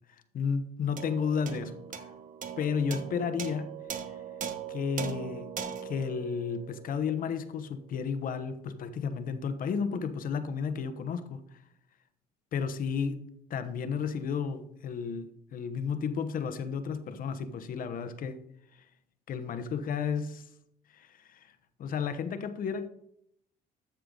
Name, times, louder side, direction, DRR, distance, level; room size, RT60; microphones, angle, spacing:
voice 1, 0.3-2.1 2.6-3.8 4.7-5.5 5.8-11.4 12.5-18.4 19.3-20.4 20.9-21.5 21.8-22.9, left 6 dB, 55° left, 1.1 m, -32 dB
sound 1, 1.0-7.6, right 7 dB, 50° right, 1.1 m, -40 dB
13.0 x 6.7 x 3.9 m
cardioid pair, 110°, 17 cm